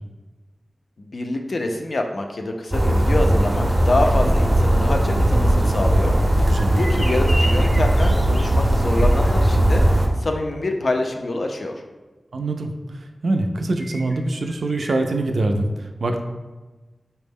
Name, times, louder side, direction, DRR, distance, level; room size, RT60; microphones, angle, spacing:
voice 1, 1.0-6.2 6.7-9.8 10.2-11.8, left 2 dB, 70° left, 3 dB, 0.4 m, -25 dB
sound 1, 2.7-10.1, right 1 dB, 30° right, 0.5 m, -18 dB
sound 2, 6.4-9.6 13.8-14.9, equal, 15° left, 0.6 m, -35 dB
voice 2, 6.5-6.8 12.3-12.7 13.0-16.2, right 2 dB, 85° right, 5 dB, 0.3 m, -24 dB
4.1 x 2.0 x 3.5 m, 1.2 s
wide cardioid pair, 80°, 0 cm